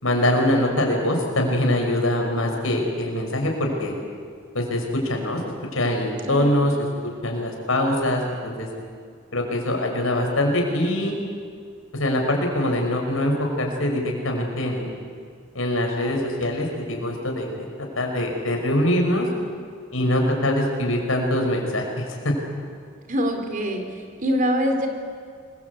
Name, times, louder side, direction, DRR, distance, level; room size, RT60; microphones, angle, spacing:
voice 1, 0.0-3.9 4.5-5.4 5.7-8.7 9.3-11.1 11.9-14.9 15.5-19.3 19.9-22.3, left 1 dB, 80° left, 2 dB, 5.8 m, -23 dB
voice 2, 6.3-6.6 23.1-23.8 24.2-24.9, equal, 40° right, 5 dB, 3.5 m, -24 dB
27.5 x 22.0 x 8.5 m, 2.1 s
head